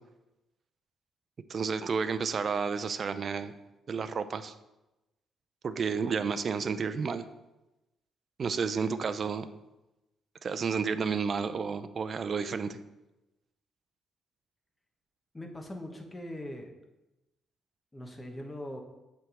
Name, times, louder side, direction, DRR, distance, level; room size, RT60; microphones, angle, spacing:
voice 1, 1.5-3.5 3.9-4.5 5.6-7.2 8.4-9.5 10.4-12.8, right 5 dB, 45° right, 11 dB, 0.5 m, -31 dB
voice 2, 15.3-16.7 17.9-18.8, left 1 dB, 15° left, 3 dB, 1.2 m, -41 dB
7.7 x 3.5 x 6.2 m, 0.99 s
cardioid pair, 90°, 0 cm